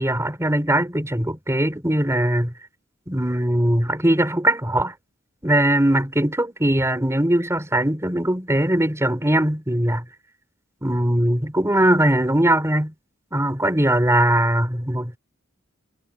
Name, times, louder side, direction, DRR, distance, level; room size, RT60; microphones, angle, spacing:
voice 1, 0.0-2.5 3.1-4.9 5.4-10.0 10.8-12.9 13.3-15.2, right 1 dB, 15° right, 4.6 m, -20 dB
head